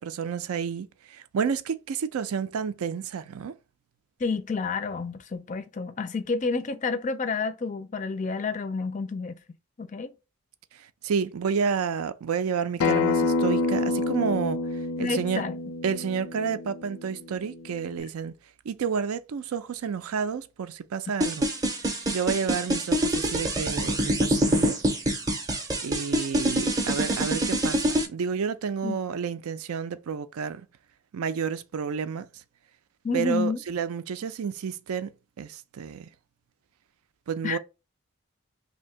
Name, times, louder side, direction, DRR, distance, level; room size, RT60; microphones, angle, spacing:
voice 1, 0.0-3.5 11.0-14.6 15.0-15.4 15.8-18.3 18.7-21.5 22.1-24.8 25.8-30.7 31.1-32.3 33.1-35.1 35.4-36.1 37.3-37.6, right 6 dB, 85° right, 0.4 m, -30 dB
voice 2, 4.2-9.4 9.8-10.1 15.0-15.6 28.8-29.0 33.0-33.6 37.4-37.6, left 4 dB, 35° left, 0.4 m, -29 dB
Acoustic guitar, 12.8-18.0, left 3 dB, 90° left, 0.5 m, -28 dB
sound 1, 21.2-28.1, right 1 dB, 15° right, 0.5 m, -25 dB
2.8 x 2.6 x 4.3 m
head